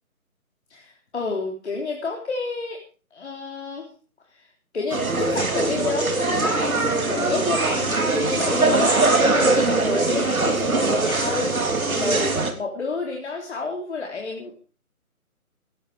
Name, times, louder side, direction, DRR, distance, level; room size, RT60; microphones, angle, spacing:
voice 1, 0.7-2.8 3.1-3.9 4.3-4.5 4.7-11.6 11.8-14.5, left 4 dB, 50° left, 1 dB, 3.8 m, -30 dB
sound 1, 4.9-12.5, right 3 dB, 70° right, 3.5 m, -22 dB
18.5 x 13.5 x 4.9 m, 0.38 s
figure-of-eight pair, 155°, 43 cm